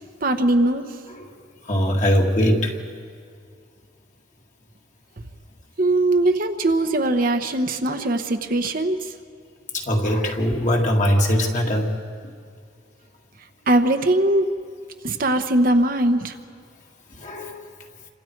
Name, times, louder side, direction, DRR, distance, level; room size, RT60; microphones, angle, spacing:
voice 1, 0.2-0.8 5.8-9.1 13.7-14.5 15.0-16.3, right 1 dB, 45° right, 6 dB, 1.0 m, -20 dB
voice 2, 1.7-2.8 7.9-8.1 9.7-12.0 12.2-12.3 17.2-17.6, equal, 40° left, 1 dB, 2.1 m, -21 dB
28.5 x 25.5 x 4.6 m, 2.2 s
head